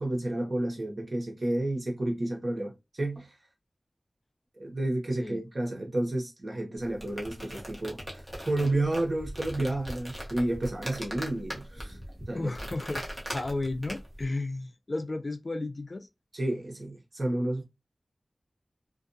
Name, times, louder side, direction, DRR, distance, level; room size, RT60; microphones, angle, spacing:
voice 1, 0.0-3.3 4.6-12.0 12.3-12.5 16.3-17.6, right 1 dB, 55° right, 0.9 m, -31 dB
sound 1, 6.8-14.3, equal, ahead, 0.9 m, -40 dB
voice 2, 12.3-16.1, left 2 dB, 45° left, 0.3 m, -33 dB
2.5 x 2.3 x 2.6 m
wide cardioid pair, 80°, 0 cm